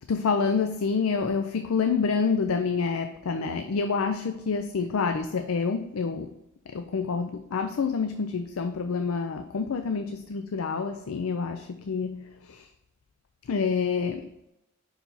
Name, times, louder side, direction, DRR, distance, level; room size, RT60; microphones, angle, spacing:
voice 1, 0.1-6.4 6.7-12.7 13.5-14.3, left 5 dB, 80° left, 7 dB, 0.4 m, -28 dB
5.6 x 4.7 x 3.9 m, 0.89 s
head